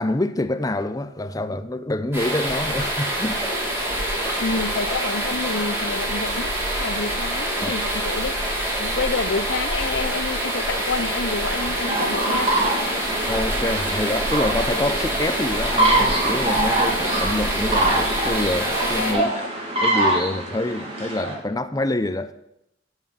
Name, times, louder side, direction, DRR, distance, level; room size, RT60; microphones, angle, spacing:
voice 1, 0.0-3.5 7.6-7.7 13.2-19.3 19.8-22.3, left 2 dB, 20° left, 0.6 m, -26 dB
sound 1, 2.1-19.1, right 1 dB, 15° right, 3.9 m, -26 dB
voice 2, 4.4-8.4 8.8-12.6 18.7-19.3, left 4 dB, 70° left, 0.7 m, -28 dB
sound 2, 11.8-21.3, right 2 dB, 35° right, 3.0 m, -24 dB
9.4 x 8.1 x 7.2 m
head